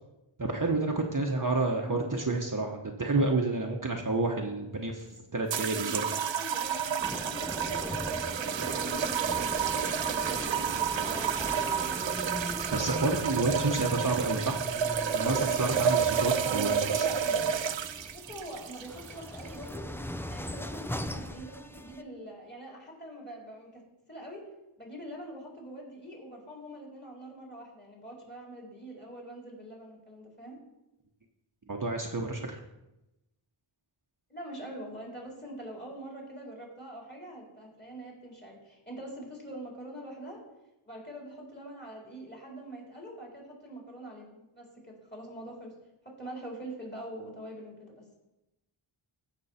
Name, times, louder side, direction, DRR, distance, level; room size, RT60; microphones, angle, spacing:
voice 1, 0.4-6.0 12.7-14.6 15.1-17.1 31.7-32.6, right 2 dB, 40° right, 1 dB, 1.1 m, -29 dB
voice 2, 1.7-2.0 5.5-10.5 11.0-12.3 16.4-17.6 18.1-19.9 20.3-23.8 24.1-24.5 24.8-30.6 34.3-40.4 40.8-45.7 46.0-48.0, right 1 dB, 20° left, -2 dB, 4.0 m, -44 dB
sound 1, 5.5-19.8, right 7 dB, 65° right, 0.6 m, -30 dB
sound 2, 7.0-22.0, left 1 dB, 5° left, 0.5 m, -40 dB
14.5 x 6.2 x 4.3 m, 0.96 s
wide cardioid pair, 50°, 50 cm